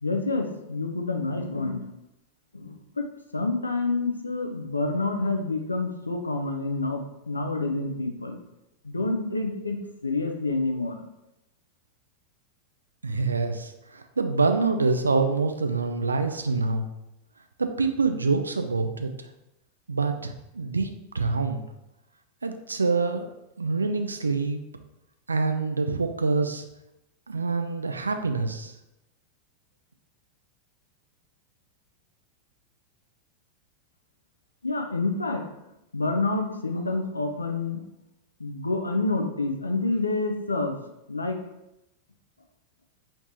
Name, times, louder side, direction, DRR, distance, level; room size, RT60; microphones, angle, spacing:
voice 1, 0.0-1.9 2.5-3.1 3.3-8.4 8.8-11.0 34.6-35.4 35.9-37.8 38.4-40.8 41.1-41.4, left 3 dB, 80° left, 4 dB, 0.4 m, -28 dB
voice 2, 13.0-16.9 17.6-19.1 19.9-21.7 22.4-23.3 23.6-24.6 25.3-26.7 27.3-28.7, right 4 dB, 75° right, 7 dB, 0.3 m, -26 dB
3.2 x 3.1 x 2.6 m, 0.90 s
figure-of-eight pair, 90°, 0 cm